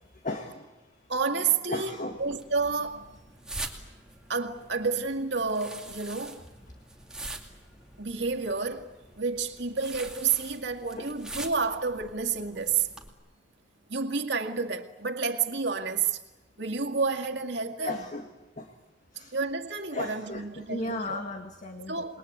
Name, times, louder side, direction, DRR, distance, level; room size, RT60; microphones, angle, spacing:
voice 1, 0.2-0.6 1.7-2.2 17.8-18.3 18.6-18.7 19.2-19.3 19.9-22.2, left 2 dB, 40° left, 1.8 m, -35 dB
voice 2, 1.1-3.2 4.3-6.4 8.0-12.9 13.9-16.2 16.6-18.0 19.3-21.2 21.9-22.2, right 5 dB, 70° right, 2.1 m, -30 dB
sound 1, 2.2-13.1, right 2 dB, 5° right, 2.4 m, -44 dB
28.0 x 21.5 x 8.6 m
head